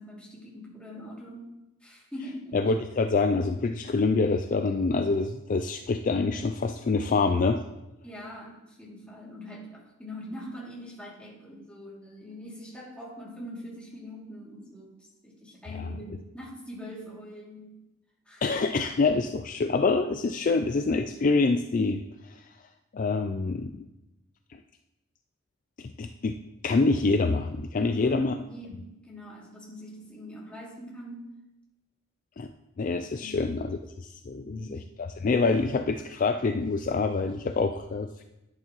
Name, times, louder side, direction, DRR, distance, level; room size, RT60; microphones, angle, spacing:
voice 1, 0.0-1.5 1.8-2.6 8.0-17.8 18.3-18.4 27.8-31.3 33.1-33.5 34.4-34.8, equal, 5° left, -6 dB, 2.6 m, -42 dB
voice 2, 2.5-7.6 15.7-15.9 18.4-22.5 22.9-23.9 24.5-24.6 25.8-26.4 26.6-28.3 32.4-32.5 32.8-38.2, left 3 dB, 40° left, 7 dB, 0.4 m, -26 dB
10.5 x 10.5 x 3.0 m, 0.96 s
head